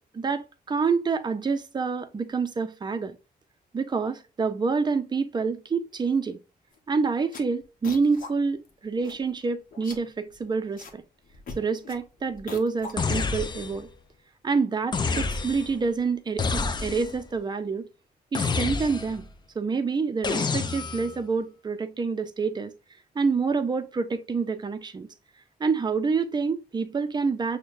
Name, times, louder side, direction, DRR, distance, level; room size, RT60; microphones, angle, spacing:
voice 1, 0.1-3.2 3.7-6.4 6.9-11.0 11.6-13.9 14.4-17.9 18.3-19.3 19.6-22.7 23.2-25.1 25.6-27.6, right 4 dB, 25° right, 0.5 m, -27 dB
sound 1, 6.7-6.9 7.2-8.3 8.6-8.7 9.0-9.4 9.7-11.0 11.2-13.5, left 4 dB, 55° left, 0.9 m, -42 dB
sound 2, 13.0-13.9 14.9-15.8 16.4-17.2 18.3-19.3 20.2-21.1, left 4 dB, 25° left, 0.4 m, -28 dB
6.1 x 2.2 x 2.5 m
cardioid pair, 120°, 17 cm